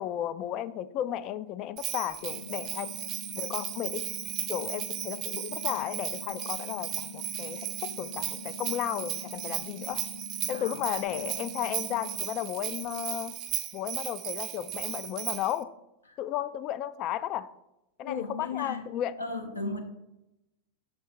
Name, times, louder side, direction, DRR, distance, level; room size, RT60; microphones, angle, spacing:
voice 1, 0.0-2.9 3.4-4.1 4.5-10.1 10.5-13.4 13.7-15.7 16.2-17.5 18.0-19.2, left 11 dB, 35° left, 14 dB, 0.3 m, -34 dB
Bell, 1.8-15.6, right 11 dB, 35° right, 0.4 m, -36 dB
sound 1, 2.2-12.2, left 4 dB, 65° left, 1.1 m, -45 dB
voice 2, 18.0-18.8 19.2-19.8, left 3 dB, 80° left, 3 dB, 0.8 m, -35 dB
6.1 x 4.6 x 4.6 m, 0.92 s
figure-of-eight pair, 90°, 0 cm